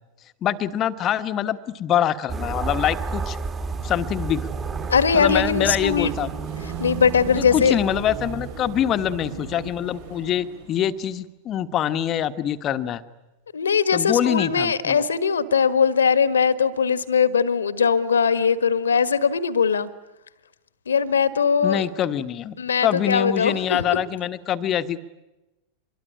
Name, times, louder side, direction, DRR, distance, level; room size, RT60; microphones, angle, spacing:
voice 1, 0.4-3.4 3.8-4.5 5.1-6.3 7.4-13.0 13.9-15.0 21.6-22.6 22.8-25.0, left 10 dB, 30° left, 11 dB, 1.3 m, -24 dB
sound 1, 2.3-10.1, right 4 dB, 20° right, 2.7 m, -32 dB
Car passing by / Traffic noise roadway noise / Engine, 3.7-11.0, right 6 dB, 55° right, 3.2 m, -37 dB
voice 2, 4.9-6.1 6.8-7.7 13.5-19.9 20.9-21.8 22.6-23.8, left 6 dB, 70° left, 14 dB, 1.6 m, -20 dB
25.5 x 22.5 x 10.0 m, 0.98 s
figure-of-eight pair, 90°, 0 cm